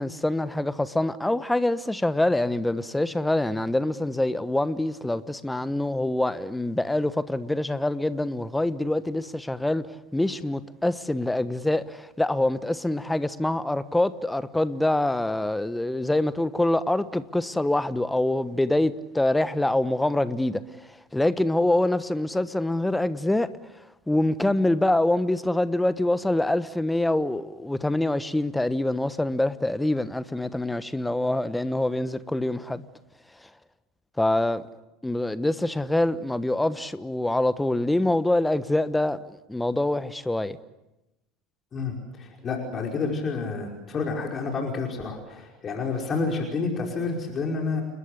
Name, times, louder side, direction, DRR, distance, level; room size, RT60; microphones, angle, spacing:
voice 1, 0.0-23.5 24.1-32.8 34.2-34.6 35.0-40.6, left 1 dB, 5° left, 1.2 m, -25 dB
voice 2, 41.7-47.8, left 4 dB, 30° left, 5.3 m, -29 dB
29.5 x 21.0 x 8.3 m
figure-of-eight pair, 75°, 0 cm